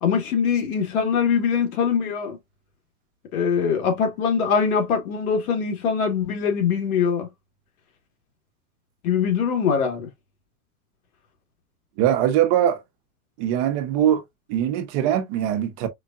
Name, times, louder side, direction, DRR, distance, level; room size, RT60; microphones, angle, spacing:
voice 1, 0.0-2.4 3.3-7.3 9.0-10.1, left 6 dB, 80° left, 1.9 m, -22 dB
voice 2, 12.0-12.8 13.4-14.2 14.5-15.9, right 11 dB, 55° right, 1.1 m, -21 dB
5.0 x 2.6 x 2.4 m
supercardioid pair, 120°, 43 cm